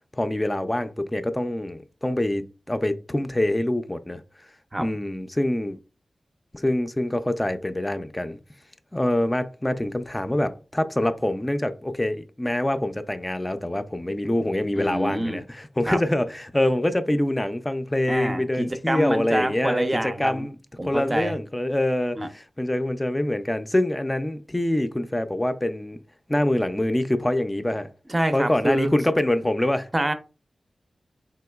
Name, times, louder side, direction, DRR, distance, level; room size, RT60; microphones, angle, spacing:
voice 1, 0.1-4.2 4.8-5.8 6.5-8.4 8.9-20.6 20.8-26.0 26.3-27.9 28.3-29.9, left 1 dB, 20° left, 0.4 m, -25 dB
voice 2, 14.8-15.4 15.9-16.0 18.1-20.5 20.8-21.4 22.2-22.3 28.1-28.9 29.9-30.1, right 1 dB, 30° right, 0.5 m, -26 dB
3.8 x 2.8 x 2.2 m
cardioid pair, 50°, 0 cm